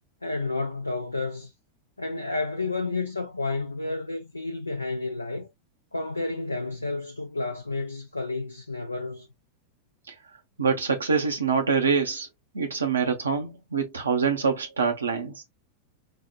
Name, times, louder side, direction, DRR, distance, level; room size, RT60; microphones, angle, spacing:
voice 1, 0.2-1.5 2.0-5.5 5.9-9.3, left 3 dB, 80° left, 0.4 m, -31 dB
voice 2, 10.6-12.3 12.5-15.4, right 5 dB, 75° right, 0.5 m, -25 dB
4.4 x 2.1 x 2.3 m
figure-of-eight pair, 90°, 0 cm